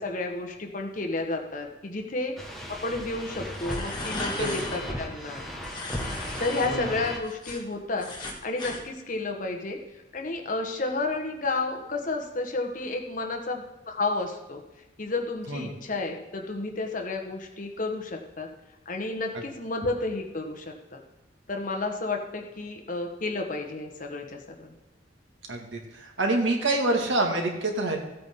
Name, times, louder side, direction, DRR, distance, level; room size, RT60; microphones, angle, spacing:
voice 1, 0.0-2.3 2.8-5.5 6.4-9.8 10.1-14.6 15.0-18.5 18.8-21.0 21.5-24.7, left 2 dB, 45° left, 2 dB, 1.4 m, -31 dB
sound 1, 2.4-7.2, left 1 dB, ahead, 1.6 m, -36 dB
sound 2, 3.5-4.8 5.6-6.7 7.0-8.8, left 2 dB, 25° left, 1.7 m, -36 dB
voice 2, 25.5-28.0, right 2 dB, 85° right, 2 dB, 2.0 m, -26 dB
15.0 x 8.6 x 3.8 m, 1.0 s
head